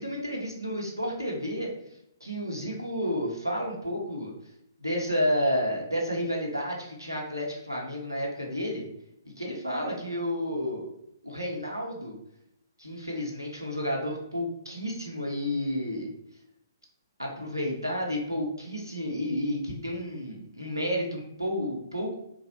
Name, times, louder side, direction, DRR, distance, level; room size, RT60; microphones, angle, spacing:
voice 1, 0.0-1.7 2.2-4.3 4.8-8.8 9.4-10.9 11.2-12.2 12.8-16.1 17.2-22.2, equal, 90° right, -1 dB, 0.9 m, -31 dB
3.9 x 2.3 x 2.9 m, 0.77 s
figure-of-eight pair, 125°, 2 cm